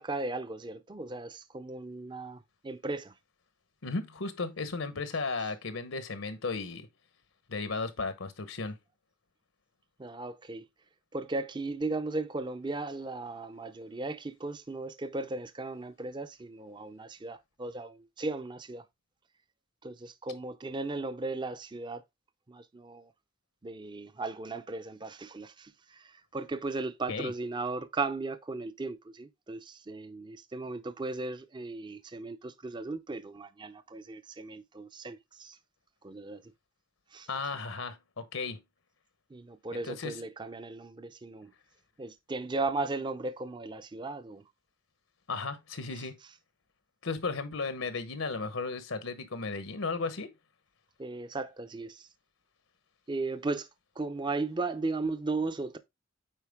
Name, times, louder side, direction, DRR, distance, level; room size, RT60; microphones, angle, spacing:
voice 1, 0.0-3.1 10.0-10.6 11.1-18.8 19.8-22.0 22.5-23.1 23.6-35.6 36.0-36.4 37.1-37.3 39.3-41.5 42.0-44.4 51.0-52.1 53.1-53.7 54.0-55.8, right 3 dB, 25° right, 0.5 m, -36 dB
voice 2, 3.8-6.9 7.5-8.8 27.1-27.3 37.3-38.6 39.8-40.2 45.3-46.1 47.0-50.3, left 4 dB, 85° left, 1.0 m, -35 dB
9.1 x 4.3 x 3.5 m
head